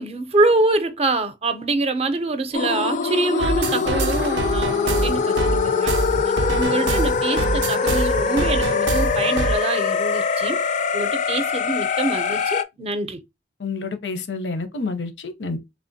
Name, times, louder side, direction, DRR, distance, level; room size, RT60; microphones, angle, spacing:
voice 1, 0.0-5.9 6.5-10.6 10.9-13.2, right 2 dB, 35° right, 0.5 m, -24 dB
sound 1, 2.5-12.6, left 5 dB, 45° left, 0.3 m, -23 dB
sound 2, 3.4-9.5, right 3 dB, 90° right, 0.4 m, -26 dB
voice 2, 13.6-15.6, left 3 dB, 90° left, 0.7 m, -28 dB
3.3 x 2.8 x 2.6 m
head